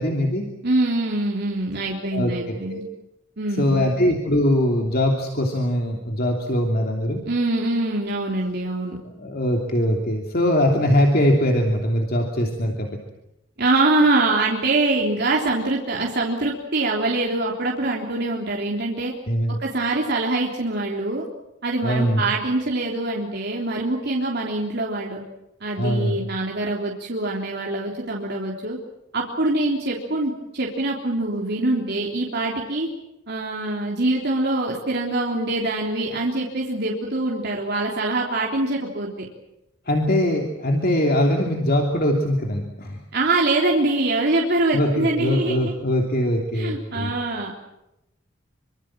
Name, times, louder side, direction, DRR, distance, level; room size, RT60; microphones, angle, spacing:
voice 1, 0.0-0.4 2.1-2.8 3.6-7.2 9.2-12.9 19.3-19.6 21.8-22.3 25.8-26.2 39.9-43.0 44.7-47.1, equal, 50° left, 1 dB, 3.1 m, -22 dB
voice 2, 0.6-2.8 3.4-3.9 7.3-9.0 13.6-19.1 19.5-21.2 21.6-25.2 25.6-28.8 29.1-32.9 33.3-39.3 43.1-45.7 46.5-47.5, right 2 dB, 55° right, -2 dB, 3.5 m, -24 dB
25.5 x 24.5 x 7.5 m, 0.88 s
head